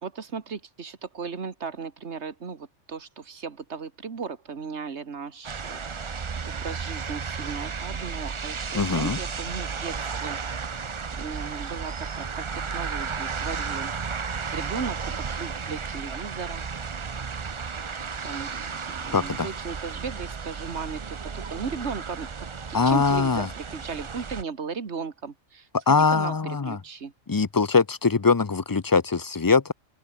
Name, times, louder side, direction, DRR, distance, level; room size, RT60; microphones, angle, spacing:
voice 1, 0.0-10.4 10.6-13.9 14.5-16.7 18.2-27.1, right 5 dB, 60° right, 2.0 m, -36 dB
sound 1, 5.4-24.4, right 5 dB, 35° right, 0.5 m, -33 dB
voice 2, 8.7-9.2 19.1-19.5 22.7-23.5 25.9-26.8 27.3-29.7, left 4 dB, 30° left, 0.3 m, -22 dB
open air
omnidirectional pair, 1.3 m